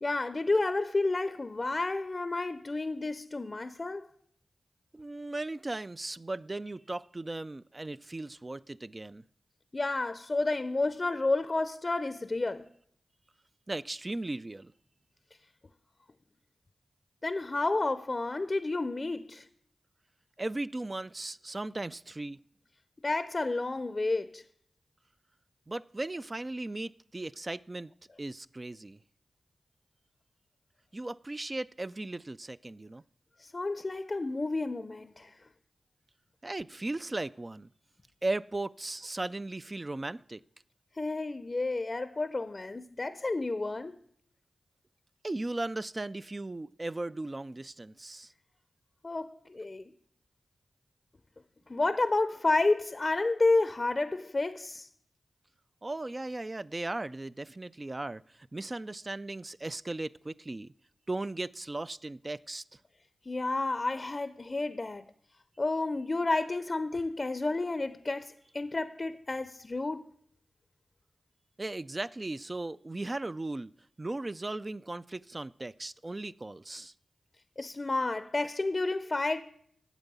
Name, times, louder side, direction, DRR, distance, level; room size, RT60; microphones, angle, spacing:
voice 1, 0.0-4.1 9.7-12.7 17.2-19.5 23.0-24.4 33.4-35.3 41.0-44.0 49.0-49.9 51.7-54.9 63.3-65.0 65.6-70.0 77.6-79.4, left 2 dB, 45° left, 0.5 m, -30 dB
voice 2, 4.9-9.2 13.7-14.7 20.4-22.4 25.7-27.9 28.2-29.0 30.9-33.0 36.4-37.7 38.2-40.4 45.2-48.3 55.8-60.7 61.1-62.8 71.6-73.7 74.0-76.9, right 2 dB, 35° right, 0.3 m, -37 dB
9.0 x 7.2 x 6.8 m
cardioid pair, 40°, 0 cm